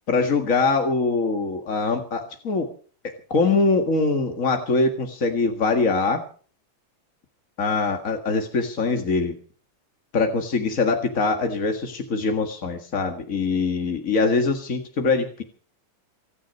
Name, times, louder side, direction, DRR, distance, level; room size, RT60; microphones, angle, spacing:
voice 1, 0.1-2.7 3.0-6.2 7.6-9.3 10.1-15.4, left 4 dB, 35° left, 4 dB, 1.5 m, -23 dB
25.0 x 10.0 x 5.5 m, 0.43 s
omnidirectional pair, 3.6 m